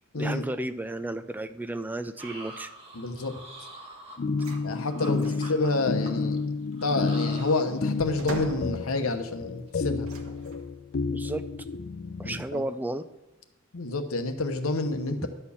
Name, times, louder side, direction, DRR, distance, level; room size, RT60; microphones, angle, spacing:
voice 1, 0.1-2.7 5.1-5.2 11.1-11.4 12.2-13.1, right 1 dB, 10° right, 11 dB, 0.3 m, -33 dB
sound 1, 2.2-5.1 5.4-6.4 6.7-8.2 8.5-8.7 9.0-9.2 9.5-9.8 10.1-10.4, right 2 dB, 30° right, 1.4 m, -45 dB
voice 2, 2.9-3.3 4.6-6.4 6.8-10.1 12.2-12.6 13.7-15.3, left 2 dB, 80° left, 7 dB, 0.9 m, -29 dB
sound 2, 4.2-12.4, left 4 dB, 50° left, 0.5 m, -31 dB
sound 3, 4.4-4.6 5.0-5.5 6.9-9.3 10.0-10.8, right 2 dB, 85° right, 1.4 m, -41 dB
11.0 x 4.4 x 7.0 m, 0.99 s
head